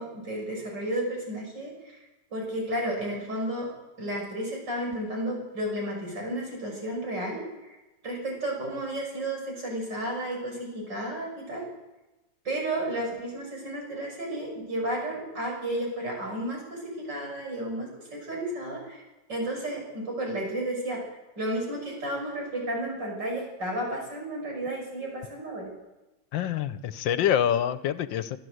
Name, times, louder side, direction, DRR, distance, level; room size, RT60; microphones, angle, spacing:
voice 1, 0.0-2.0 2.3-3.7 4.0-7.4 8.0-11.7 12.5-19.0 19.3-21.0 21.4-25.7, right 1 dB, 65° right, 0 dB, 7.3 m, -32 dB
voice 2, 26.3-28.4, left 9 dB, 75° left, 13 dB, 1.5 m, -26 dB
25.0 x 13.0 x 8.0 m, 1.1 s
omnidirectional pair, 2.1 m